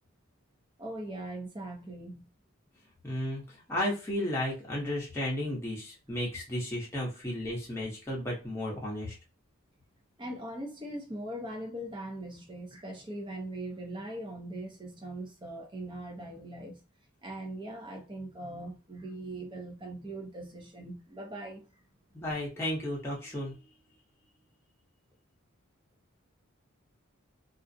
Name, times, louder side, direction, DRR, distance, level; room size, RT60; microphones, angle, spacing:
voice 1, 0.8-2.3 10.2-16.8 17.2-21.6, right 1 dB, 20° right, 0.6 m, -40 dB
voice 2, 3.0-9.2 22.1-23.6, left 1 dB, 10° left, 0.8 m, -33 dB
2.4 x 2.0 x 2.6 m
head